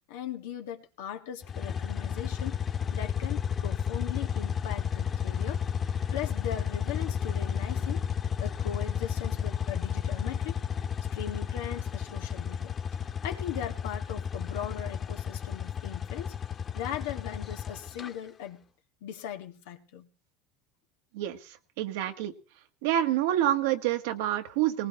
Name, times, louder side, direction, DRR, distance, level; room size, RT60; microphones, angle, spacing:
voice 1, 0.1-2.6 2.9-5.6 6.1-8.0 8.4-10.6 11.1-12.7 13.2-16.3 16.7-18.6 19.0-20.1, left 10 dB, 85° left, 4 dB, 1.7 m, -39 dB
sound 1, 1.4-18.1, left 7 dB, 35° left, 1.9 m, -32 dB
voice 2, 21.1-22.3 22.8-24.9, right 12 dB, 80° right, 7 dB, 1.5 m, -28 dB
19.5 x 19.0 x 3.0 m, 0.35 s
supercardioid pair, 95°, 0 cm